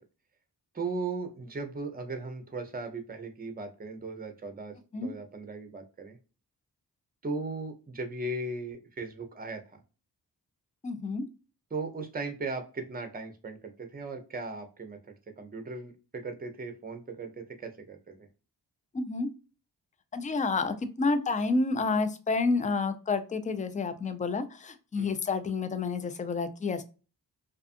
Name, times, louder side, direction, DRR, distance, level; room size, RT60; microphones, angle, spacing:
voice 1, 0.7-6.2 7.2-9.8 11.7-15.0 15.4-18.3 25.0-25.1, right 3 dB, 20° right, 7 dB, 0.6 m, -37 dB
voice 2, 10.8-11.2 18.9-19.3 20.1-26.8, left 3 dB, 20° left, 10 dB, 0.4 m, -29 dB
2.5 x 2.4 x 2.5 m, 0.33 s
cardioid pair, 60°, 41 cm